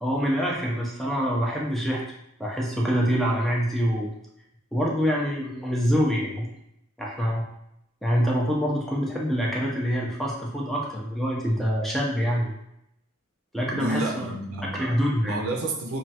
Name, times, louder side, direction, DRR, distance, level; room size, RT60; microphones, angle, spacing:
voice 1, 0.0-2.0 2.4-4.1 4.7-6.5 7.0-7.5 8.0-12.5 13.5-14.3 14.7-15.4, equal, ahead, -4 dB, 0.5 m, -25 dB
voice 2, 13.7-16.0, right 2 dB, 70° right, 1 dB, 0.5 m, -30 dB
3.1 x 2.3 x 2.8 m, 0.79 s
head